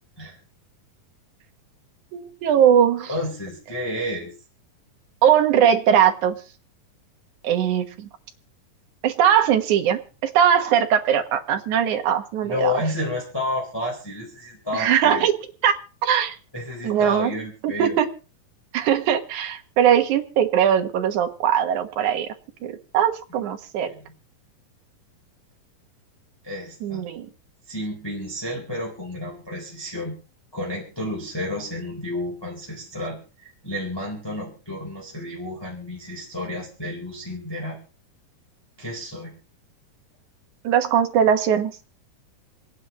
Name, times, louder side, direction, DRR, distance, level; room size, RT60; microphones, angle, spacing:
voice 1, 2.1-3.1 5.2-6.4 7.4-8.1 9.0-12.7 14.7-15.3 15.6-15.7 16.0-16.4 16.8-17.3 17.6-18.1 18.7-22.3 22.6-23.9 26.8-27.3 40.6-41.7, right 9 dB, 65° right, 6 dB, 2.4 m, -20 dB
voice 2, 3.1-4.3 12.4-15.3 16.5-18.0 23.9-24.1 26.4-27.0 27.7-30.1 30.5-37.8 38.8-39.3, left 1 dB, 5° left, -2 dB, 3.5 m, -31 dB
28.5 x 9.8 x 3.0 m, 0.34 s
omnidirectional pair, 4.3 m